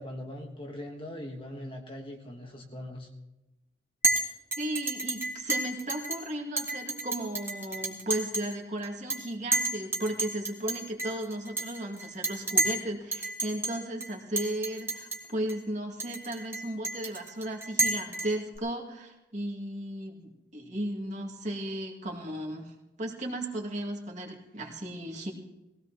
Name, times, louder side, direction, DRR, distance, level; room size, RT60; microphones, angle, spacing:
voice 1, 0.0-3.1, left 1 dB, 25° left, 1 dB, 1.4 m, -41 dB
Chink clink, 4.0-4.2 4.5-6.2 6.6-8.5 8.8-9.2 9.5-12.8 13.1-13.7 14.0-14.1 14.4-15.2 15.5-15.6 16.0-18.6, right 2 dB, 15° right, 1.6 m, -30 dB
voice 2, 4.6-22.7 23.0-25.3, right 1 dB, 40° right, 1 dB, 2.3 m, -35 dB
20.5 x 16.5 x 3.0 m, 1.0 s
head